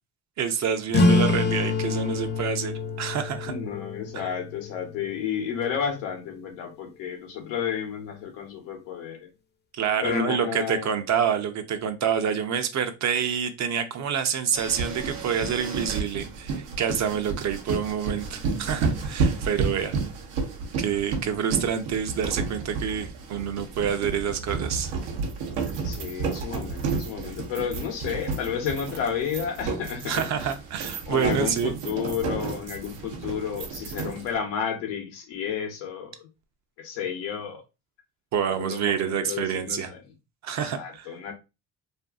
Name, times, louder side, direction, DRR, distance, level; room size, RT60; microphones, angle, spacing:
voice 1, 0.4-3.5 4.1-4.3 9.7-20.0 20.8-24.9 30.1-31.8 38.3-39.9 40.4-41.1, right 7 dB, 45° right, 0.6 m, -27 dB
sound 1, 0.9-6.0, left 3 dB, 30° left, 0.5 m, -26 dB
voice 2, 3.5-9.3 10.0-11.0 25.8-30.5 31.1-36.3 36.8-37.6 38.6-40.0 40.6-41.3, left 7 dB, 85° left, 0.8 m, -31 dB
sound 2, 14.5-34.3, right 4 dB, 80° right, 0.7 m, -31 dB
2.6 x 2.5 x 2.3 m
supercardioid pair, 75°, 38 cm